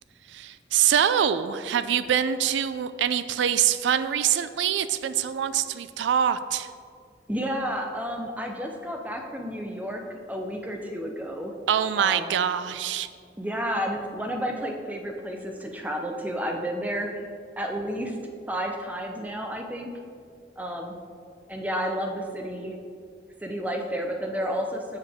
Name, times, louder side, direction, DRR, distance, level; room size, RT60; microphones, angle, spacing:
voice 1, 0.3-6.7 11.7-13.1, right 9 dB, 85° right, 13 dB, 0.3 m, -24 dB
voice 2, 7.3-11.5 12.0-12.3 13.4-17.2 17.6-18.2 18.4-19.9 20.6-20.9 21.5-22.8 23.4-25.0, equal, 10° right, 2 dB, 0.5 m, -31 dB
7.1 x 6.6 x 3.5 m, 2.3 s
head